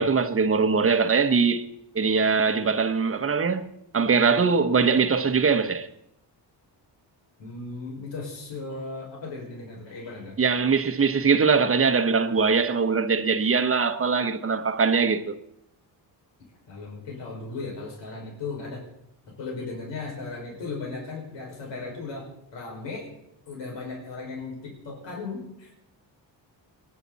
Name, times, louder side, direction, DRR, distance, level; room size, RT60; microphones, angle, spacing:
voice 1, 0.0-1.7 1.9-5.9 10.4-15.4, right 5 dB, 30° right, 1.2 m, -22 dB
voice 2, 7.4-10.4 16.7-18.8 19.4-23.1 23.5-25.7, left 3 dB, 80° left, 5.7 m, -36 dB
28.5 x 11.0 x 4.2 m
cardioid pair, 110°, 43 cm